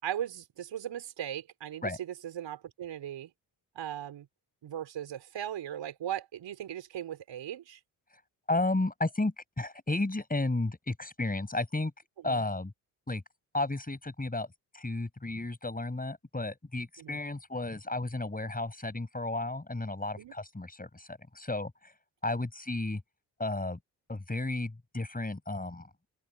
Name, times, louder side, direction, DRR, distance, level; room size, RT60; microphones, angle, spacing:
voice 1, 0.0-3.3 3.8-4.3 4.6-7.8 12.2-12.4 17.0-17.2 20.2-20.3, right 11 dB, 60° right, 5.2 m, -38 dB
voice 2, 8.5-11.9 12.2-12.7 13.1-13.2 13.5-21.9 22.2-23.0 23.4-23.8 24.1-25.9, left 2 dB, 15° left, 7.6 m, -33 dB
open air
hypercardioid pair, 45°, 50 cm